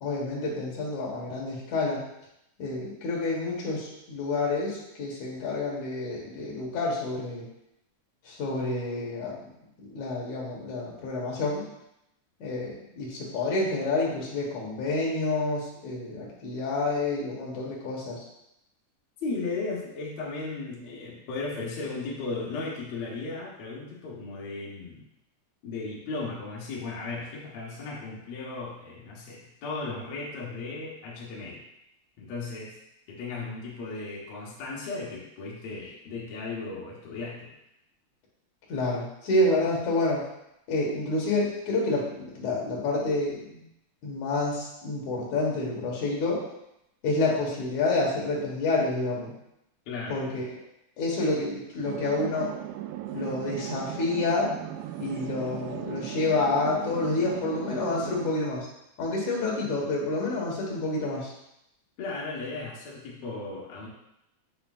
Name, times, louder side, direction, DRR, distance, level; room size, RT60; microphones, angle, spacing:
voice 1, 0.0-2.0 2.6-7.5 8.2-9.5 9.8-11.6 12.4-18.2 38.7-40.2 40.7-43.6 44.0-46.4 47.0-49.3 50.1-50.5 51.0-52.5 53.1-54.5 55.0-58.7 59.0-61.3, left 2 dB, 55° left, -3 dB, 2.2 m, -28 dB
voice 2, 19.2-25.0 25.6-31.6 32.2-32.8 33.1-37.5 49.8-50.2 62.0-63.9, left 3 dB, 85° left, -5 dB, 1.5 m, -36 dB
sound 1, 51.8-58.3, right 12 dB, 90° right, 2.9 m, -37 dB
8.7 x 5.8 x 2.5 m, 0.82 s
omnidirectional pair, 5.2 m